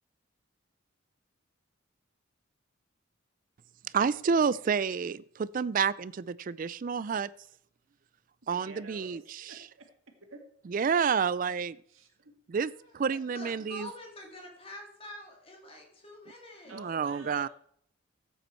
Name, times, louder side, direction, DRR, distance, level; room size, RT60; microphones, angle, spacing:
voice 1, 3.9-7.3 8.5-9.5 10.7-11.7 12.5-13.9 16.7-17.5, right 6 dB, 40° right, 19 dB, 0.3 m, -29 dB
voice 2, 8.5-9.9 10.3-10.4 11.9-12.3 16.7-17.5, right 2 dB, 80° right, 4 dB, 2.0 m, -49 dB
voice 3, 12.7-16.8, left 1 dB, 30° left, 0 dB, 2.3 m, -47 dB
14.5 x 8.0 x 4.5 m, 0.67 s
head